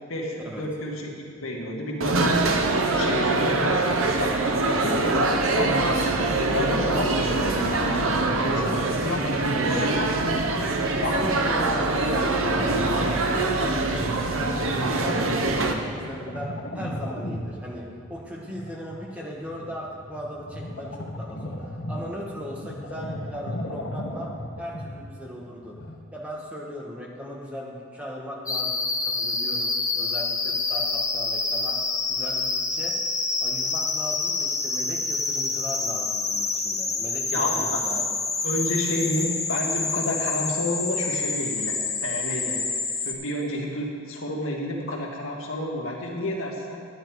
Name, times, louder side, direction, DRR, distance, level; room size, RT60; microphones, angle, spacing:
voice 1, 0.1-4.3 4.8-5.1 5.4-6.0 6.5-10.5 11.0-11.6 37.3-37.8 38.4-42.6 43.0-46.8, left 1 dB, 80° left, -1 dB, 1.8 m, -30 dB
sound 1, 2.0-15.7, right 2 dB, 80° right, 1.0 m, -24 dB
voice 2, 10.9-15.2 15.4-24.3 24.6-25.8 26.1-31.8 32.1-33.0 33.4-38.2, equal, 5° right, -3 dB, 1.3 m, -38 dB
sound 2, 12.4-25.9, left 1 dB, 60° left, 1.4 m, -36 dB
sound 3, 28.5-43.1, left 4 dB, 15° left, 0.8 m, -27 dB
10.5 x 10.0 x 4.7 m, 2.1 s
head